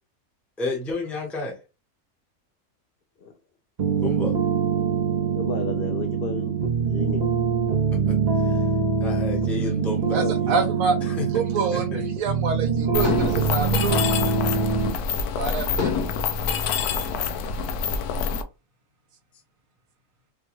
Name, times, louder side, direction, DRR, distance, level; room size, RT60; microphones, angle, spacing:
voice 1, 0.6-1.6 4.0-4.4 7.9-8.6 9.0-10.5 11.0-11.3 11.7-12.0, left 2 dB, ahead, 0.8 m, -31 dB
sound 1, 3.8-14.9, right 6 dB, 50° right, 0.5 m, -24 dB
voice 2, 5.3-6.6 6.9-7.3 9.6-10.3, left 5 dB, 70° left, 0.5 m, -33 dB
voice 3, 10.1-11.0 11.3-14.3 15.4-15.9, right 4 dB, 70° right, 1.2 m, -27 dB
Mechanisms, 12.9-18.4, left 6 dB, 85° left, 1.1 m, -26 dB
4.5 x 2.3 x 3.0 m
omnidirectional pair, 1.5 m